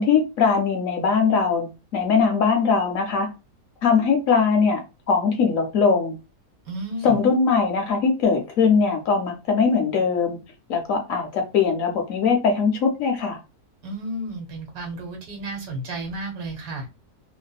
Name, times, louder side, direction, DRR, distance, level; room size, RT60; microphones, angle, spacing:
voice 1, 0.0-3.3 3.8-4.8 5.1-6.2 7.0-10.4 10.7-13.4, left 5 dB, 70° left, 0.9 m, -21 dB
voice 2, 6.6-7.2 13.8-16.9, right 1 dB, 70° right, 1.5 m, -32 dB
2.6 x 2.5 x 2.3 m
omnidirectional pair, 1.7 m